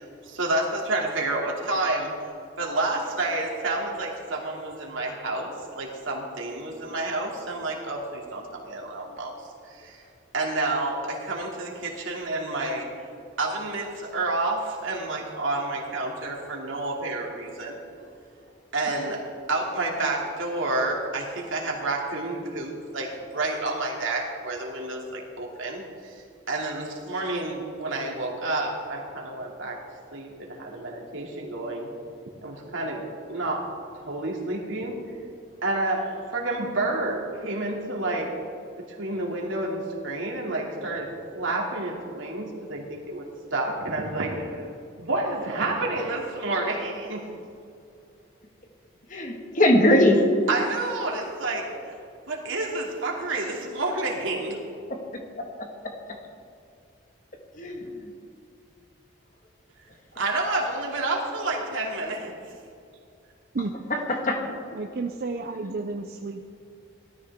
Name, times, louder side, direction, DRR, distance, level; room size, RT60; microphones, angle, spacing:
voice 1, 0.0-2.1 2.6-9.3 9.7-10.0 10.3-12.9 13.4-17.8 18.7-19.2 19.5-29.8 30.1-31.9 32.4-33.0 33.3-33.7 34.0-35.0 35.6-38.3 39.0-43.3 43.5-44.7 45.0-47.2 50.5-51.7 52.3-54.6 60.1-62.4, right 2 dB, 80° right, -1 dB, 2.6 m, -29 dB
voice 2, 49.1-50.2 55.1-55.5 57.6-57.8 64.1-64.4, left 1 dB, 40° left, 2 dB, 1.7 m, -20 dB
voice 3, 64.7-66.5, right 3 dB, 50° right, 3 dB, 0.5 m, -31 dB
18.0 x 13.0 x 3.6 m, 2.5 s
head